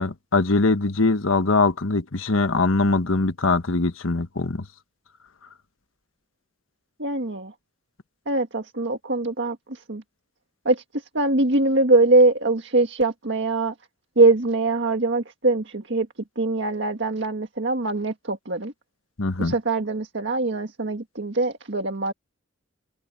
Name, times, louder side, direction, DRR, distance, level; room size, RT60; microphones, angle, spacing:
voice 1, 0.0-4.6 19.2-19.5, left 3 dB, 90° left, 1.3 m, -22 dB
voice 2, 7.0-7.5 8.3-10.0 10.7-10.8 11.1-13.7 14.2-16.1 16.4-18.7 19.4-22.1, right 2 dB, 60° right, 1.8 m, -22 dB
open air
head